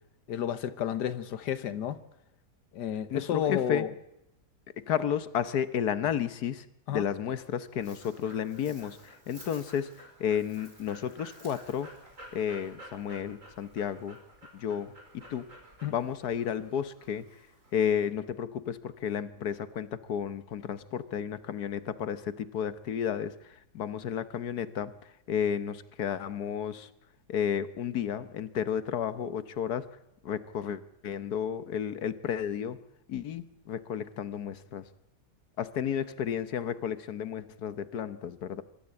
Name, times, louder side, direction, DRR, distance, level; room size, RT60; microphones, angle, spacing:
voice 1, 0.3-2.0 2.7-3.9 6.9-7.0 15.8-15.9, left 9 dB, 85° left, 13 dB, 1.7 m, -31 dB
voice 2, 3.1-3.8 4.8-11.9 12.3-14.2 14.5-15.5 15.9-17.3 17.7-26.9 27.3-29.9 30.2-32.8 33.1-34.8 35.6-38.6, left 8 dB, 70° left, 14 dB, 1.5 m, -32 dB
Dog, 7.3-18.1, right 1 dB, 50° right, 5.5 m, -52 dB
24.5 x 13.5 x 8.7 m, 0.83 s
omnidirectional pair, 1.8 m